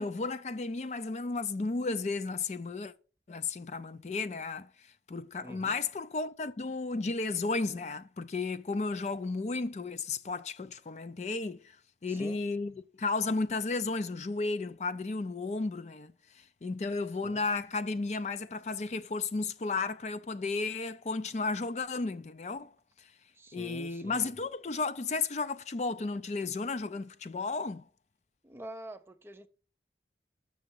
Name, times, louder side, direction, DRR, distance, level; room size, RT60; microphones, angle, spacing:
voice 1, 0.0-2.9 3.3-11.8 12.0-12.7 13.0-22.7 23.0-23.1 23.5-27.9, left 3 dB, 40° left, 0.4 m, -33 dB
voice 2, 5.4-5.8 12.1-12.4 17.2-17.5 23.3-24.4 28.4-29.5, right 1 dB, 15° right, 0.5 m, -46 dB
6.8 x 6.2 x 5.4 m
head